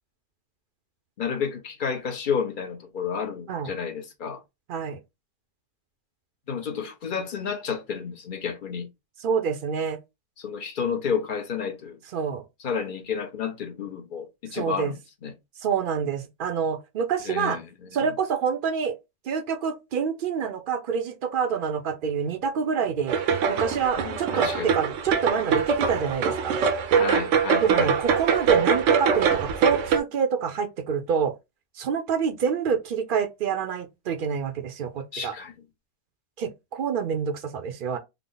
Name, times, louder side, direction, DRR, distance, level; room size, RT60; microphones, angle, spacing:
voice 1, 1.2-4.4 6.5-8.9 10.4-12.0 12.6-14.9 15.2-15.3 17.3-17.9 24.0-24.7 27.0-27.9 35.1-35.5, left 6 dB, 50° left, 0.8 m, -31 dB
voice 2, 4.7-5.0 9.2-10.0 12.1-12.4 14.5-14.9 15.6-17.6 17.9-19.0 19.3-26.6 27.6-31.3 31.8-35.3 36.4-38.0, right 6 dB, 55° right, 0.6 m, -27 dB
sound 1, 23.1-30.0, right 6 dB, 80° right, 0.9 m, -23 dB
3.5 x 2.0 x 3.8 m
omnidirectional pair, 1.3 m